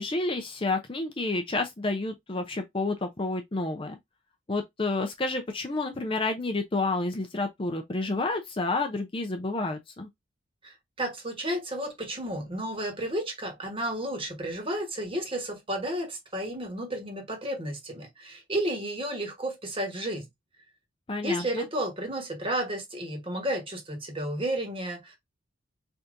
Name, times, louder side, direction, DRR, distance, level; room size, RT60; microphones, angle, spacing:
voice 1, 0.0-4.0 4.5-10.1 21.1-21.6, left 2 dB, 25° left, 0.5 m, -30 dB
voice 2, 10.6-20.3 21.2-25.2, right 1 dB, 25° right, 1.2 m, -32 dB
4.2 x 3.4 x 2.5 m
head